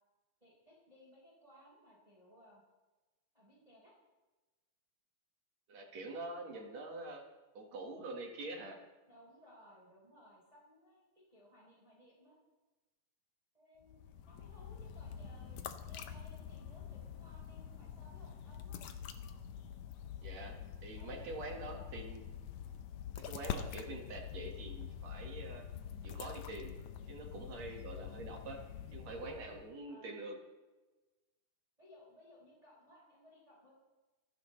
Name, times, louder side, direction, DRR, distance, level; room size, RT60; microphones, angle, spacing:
voice 1, 0.4-2.6 3.3-3.9 6.5-6.9 9.1-12.4 13.5-18.9 21.0-22.0 29.9-30.2 31.8-33.7, left 1 dB, 10° right, -5 dB, 4.7 m, -61 dB
voice 2, 5.7-7.3 7.5-8.8 20.2-22.2 23.2-25.7 26.0-26.7 27.1-28.6 28.9-30.4, right 2 dB, 60° right, 1 dB, 3.0 m, -45 dB
sound 1, 13.8-29.7, left 8 dB, 70° left, 2.1 m, -46 dB
26.0 x 12.5 x 3.3 m, 1.2 s
omnidirectional pair, 3.5 m